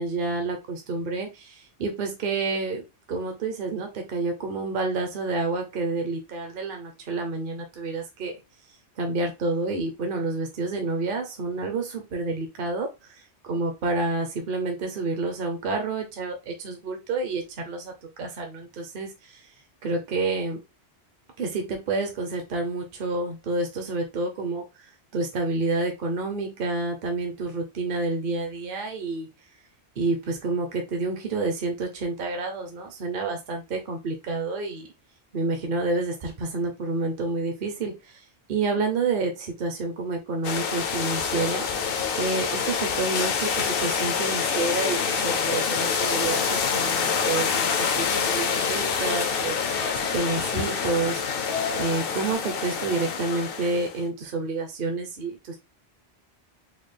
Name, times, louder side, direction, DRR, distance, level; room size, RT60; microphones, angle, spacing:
voice 1, 0.0-8.4 9.0-12.9 13.4-19.5 19.8-20.6 21.4-29.3 30.0-34.9 35.3-51.5 51.7-55.6, right 3 dB, 55° right, 4 dB, 0.8 m, -29 dB
sound 1, 40.4-54.0, left 6 dB, 65° left, 0.7 m, -26 dB
sound 2, 44.2-52.3, right 1 dB, 85° right, 1.7 m, -44 dB
4.3 x 2.3 x 3.3 m, 0.25 s
omnidirectional pair, 1.1 m